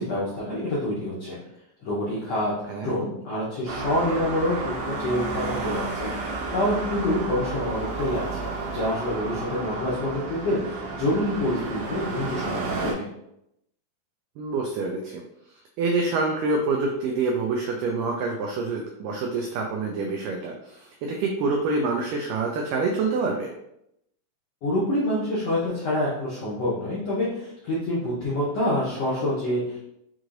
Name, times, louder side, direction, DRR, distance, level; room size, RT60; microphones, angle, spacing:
voice 1, 0.0-1.4 1.8-2.5 2.8-8.5 8.7-13.1 24.6-29.8, left 1 dB, 75° left, -8 dB, 1.4 m, -27 dB
Traffic noise roadway noise, 3.7-12.9, right 3 dB, 70° right, 1.3 m, -32 dB
voice 2, 14.4-15.2 15.8-23.5, right 3 dB, 90° right, 1 dB, 1.8 m, -26 dB
6.3 x 3.1 x 2.5 m, 0.80 s
omnidirectional pair, 4.3 m